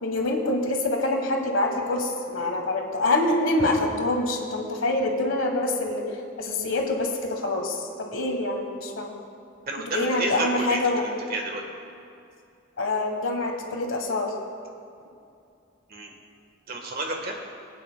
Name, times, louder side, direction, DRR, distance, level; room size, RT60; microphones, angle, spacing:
voice 1, 0.0-6.0 6.4-9.1 9.9-11.1 12.8-14.3, left 2 dB, 85° left, 2 dB, 1.3 m, -25 dB
voice 2, 9.7-11.6 15.9-16.1 16.7-17.3, right 2 dB, 50° right, 2 dB, 1.3 m, -31 dB
21.0 x 9.1 x 2.2 m, 2.5 s
head